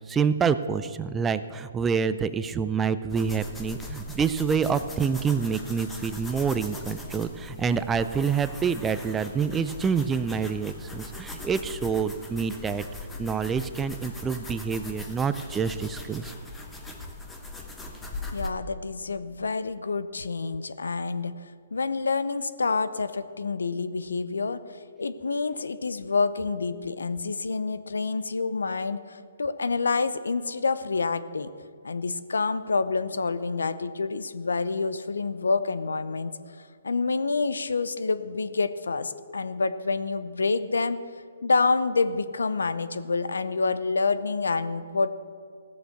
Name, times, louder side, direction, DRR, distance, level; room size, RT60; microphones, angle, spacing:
voice 1, 0.1-12.8 13.2-16.3, right 6 dB, 15° right, 12 dB, 0.4 m, -27 dB
sound 1, 3.1-18.5, left 2 dB, 10° left, 1.1 m, -40 dB
voice 2, 18.3-31.5 31.8-36.3 36.8-41.0 41.4-45.1, left 4 dB, 85° left, 12 dB, 0.7 m, -28 dB
15.5 x 6.9 x 6.4 m, 2.2 s
hypercardioid pair, 140°, 0 cm